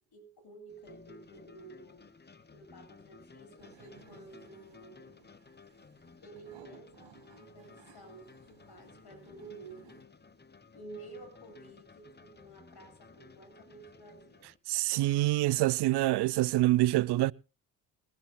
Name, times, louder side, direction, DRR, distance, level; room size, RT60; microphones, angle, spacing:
voice 1, 0.1-2.1 2.5-5.1 6.2-10.0 10.7-14.5, right 3 dB, 60° left, 7.9 m, -51 dB
sound 1, 0.7-14.6, left 4 dB, 20° left, 1.4 m, -56 dB
sound 2, 3.6-10.0, right 10 dB, 80° right, 2.1 m, -60 dB
voice 2, 14.7-17.3, right 16 dB, 65° right, 0.6 m, -26 dB
21.5 x 15.5 x 2.2 m
supercardioid pair, 60°, 44 cm